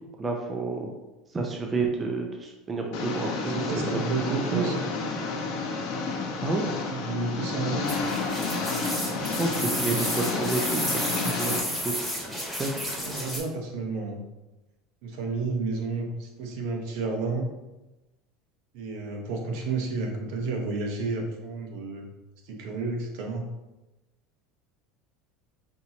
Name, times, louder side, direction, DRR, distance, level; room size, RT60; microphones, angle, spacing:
voice 1, 0.2-0.9 1.3-4.0 4.3-4.8 6.4-6.6 9.2-12.9, right 3 dB, 20° right, 1 dB, 0.6 m, -30 dB
Engine, 2.9-11.6, left 4 dB, 70° left, 0.9 m, -31 dB
voice 2, 3.5-4.8 6.7-7.9 12.9-14.2 15.0-17.5 18.7-22.1 22.5-23.4, right 3 dB, 70° right, 2 dB, 0.9 m, -31 dB
sound 1, 7.8-13.4, equal, 5° right, 1.4 m, -32 dB
5.8 x 2.8 x 2.9 m, 1.0 s
supercardioid pair, 125°, 0 cm